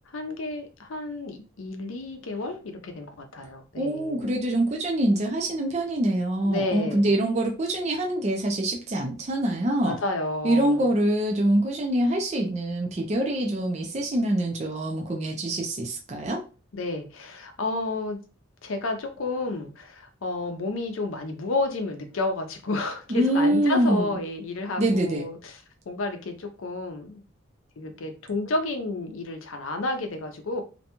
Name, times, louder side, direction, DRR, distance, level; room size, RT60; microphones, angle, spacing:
voice 1, 0.1-4.3 6.4-7.1 9.8-10.9 16.7-18.2 18.6-27.2 27.8-30.6, left 2 dB, 75° left, 5 dB, 0.5 m, -31 dB
voice 2, 3.8-10.0 10.4-16.4 23.1-24.2 24.8-25.2, right 1 dB, 30° right, 1 dB, 0.4 m, -25 dB
2.6 x 2.2 x 2.8 m, 0.33 s
head